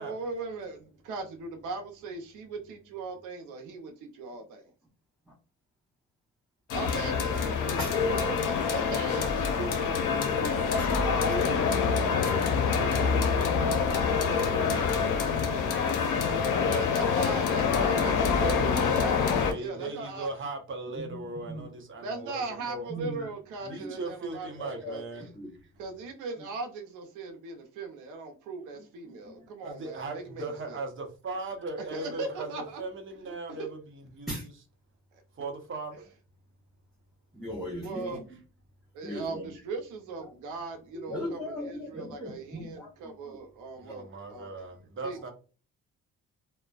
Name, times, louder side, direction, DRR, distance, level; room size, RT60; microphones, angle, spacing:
voice 1, 0.0-4.7 6.7-7.8 8.0-9.5 16.6-20.3 22.0-25.0 25.8-30.8 31.9-32.8 33.2-33.3 33.6-33.7 37.8-38.2 38.9-44.5 45.0-45.3, right 3 dB, 90° right, 0.6 m, -38 dB
sound 1, 6.7-19.5, left 6 dB, 80° left, 0.6 m, -26 dB
voice 2, 9.6-13.6 13.9-15.0 19.4-22.9 23.6-25.3 29.6-33.8 34.1-34.5 35.4-36.1 43.7-45.3, right 3 dB, 40° right, 0.8 m, -39 dB
voice 3, 22.9-23.3 23.7-24.0 24.6-25.0 25.3-25.5 28.7-28.8 29.2-29.4 34.3-34.5 37.3-38.2 39.0-39.5 40.2-40.3 40.9-43.4, equal, ahead, 0.8 m, -38 dB
2.5 x 2.1 x 2.3 m
cardioid pair, 90°, 30 cm